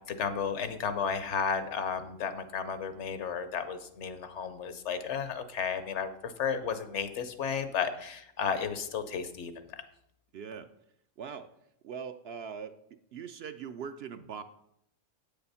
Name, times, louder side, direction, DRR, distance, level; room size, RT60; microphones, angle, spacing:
voice 1, 0.1-9.5, left 6 dB, 65° left, 11 dB, 1.1 m, -33 dB
voice 2, 10.3-10.7 11.2-11.5 11.8-12.7 13.1-14.4, right 7 dB, 65° right, 9 dB, 0.7 m, -41 dB
8.5 x 6.9 x 5.5 m, 0.75 s
omnidirectional pair, 1.3 m